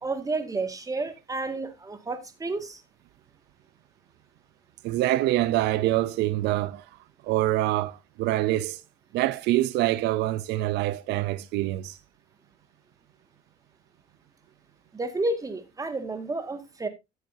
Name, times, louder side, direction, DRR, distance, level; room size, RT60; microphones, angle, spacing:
voice 1, 0.0-2.8 14.9-16.9, right 2 dB, 20° right, 1.9 m, -31 dB
voice 2, 4.8-6.8 7.2-8.8 9.1-12.0, right 15 dB, 85° right, 0.6 m, -25 dB
14.0 x 7.8 x 2.7 m
cardioid pair, 110°, 17 cm